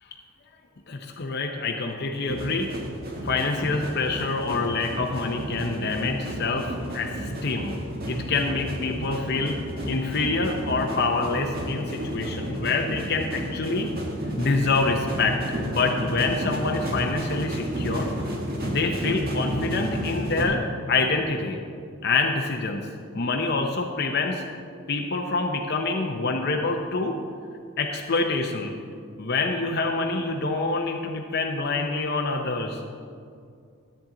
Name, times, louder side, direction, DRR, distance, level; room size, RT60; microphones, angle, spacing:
voice 1, 0.9-2.7 3.2-7.7 8.1-9.6 9.9-13.9 14.4-18.1 18.6-20.6 20.9-21.6 22.0-22.9 23.1-24.4 24.9-27.2 27.8-28.7 29.2-32.8, left 3 dB, 50° left, 2 dB, 0.7 m, -26 dB
sound 1, 2.3-20.4, right 1 dB, 45° right, 1.5 m, -32 dB
13.5 x 8.8 x 3.8 m, 2.3 s
head